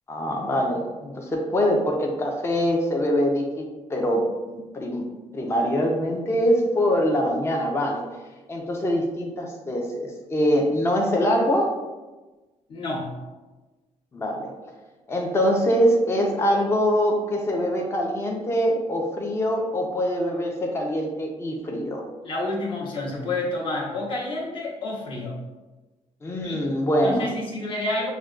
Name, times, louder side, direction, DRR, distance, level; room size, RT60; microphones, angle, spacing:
voice 1, 0.1-5.0 5.3-8.1 8.5-11.8 14.1-14.5 15.1-22.1 26.2-27.3, equal, 20° left, 1 dB, 0.5 m, -24 dB
voice 2, 12.7-13.2 22.2-25.4 26.4-26.6 27.0-28.1, left 2 dB, 45° left, -3 dB, 1.0 m, -29 dB
6.1 x 2.2 x 2.4 m, 1.2 s
cardioid pair, 125°, 12 cm